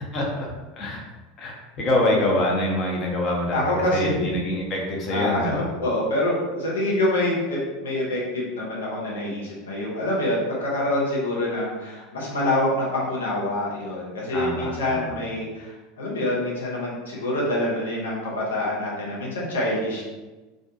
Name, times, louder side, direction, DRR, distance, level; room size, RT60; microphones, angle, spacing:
voice 1, 0.1-0.5 0.8-1.0 1.4-5.7 14.3-15.2, left 1 dB, 40° left, -1 dB, 0.7 m, -25 dB
voice 2, 3.5-4.3 5.1-15.7 16.0-20.0, left 1 dB, 75° left, -5 dB, 0.6 m, -26 dB
2.4 x 2.1 x 2.6 m, 1.2 s
figure-of-eight pair, 80°, 0 cm